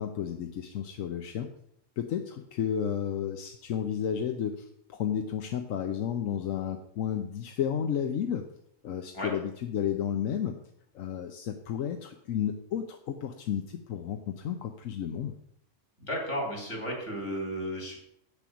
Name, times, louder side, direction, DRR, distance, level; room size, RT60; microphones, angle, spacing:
voice 1, 0.0-1.5 2.0-8.5 8.8-10.6 10.9-15.3, left 9 dB, 90° left, 5 dB, 1.1 m, -32 dB
voice 2, 16.0-18.0, equal, 65° left, 0 dB, 3.5 m, -33 dB
8.5 x 6.8 x 6.2 m, 0.74 s
omnidirectional pair, 1.3 m